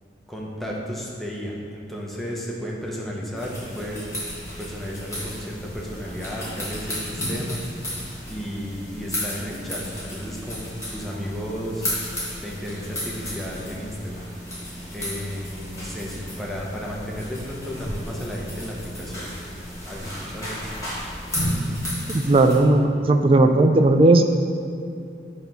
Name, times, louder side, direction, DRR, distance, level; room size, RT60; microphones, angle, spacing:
voice 1, 0.3-4.1 4.6-7.7 8.2-10.6 10.9-12.0 12.4-14.2 14.9-19.3 19.9-20.6, equal, ahead, -4 dB, 0.7 m, -33 dB
sound 1, 3.4-22.6, equal, 15° left, 1.5 m, -33 dB
voice 2, 22.1-24.2, right 2 dB, 30° right, 6 dB, 0.3 m, -16 dB
8.0 x 2.9 x 5.2 m, 2.4 s
head